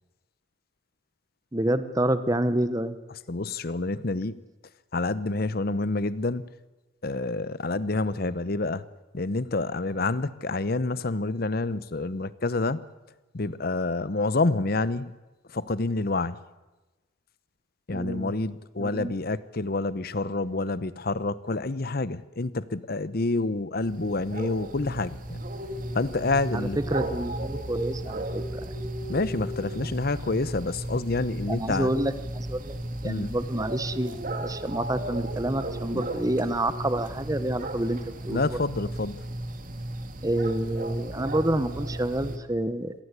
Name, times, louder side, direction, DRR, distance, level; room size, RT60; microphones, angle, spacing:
voice 1, 1.5-3.0 17.9-18.3 18.8-19.1 26.5-28.7 31.5-32.8 33.0-38.5 40.2-42.9, right 1 dB, 20° right, 12 dB, 1.0 m, -28 dB
voice 2, 3.3-4.4 4.9-6.5 7.0-8.8 9.1-12.8 13.3-15.1 15.5-16.4 17.9-25.4 25.9-26.8 29.1-31.9 33.0-33.3 35.9-36.2 38.3-39.2, left 2 dB, 50° left, 17 dB, 0.8 m, -28 dB
sound 1, 23.8-42.4, right 1 dB, 45° right, 2.3 m, -35 dB
26.5 x 18.0 x 8.2 m, 1.1 s
head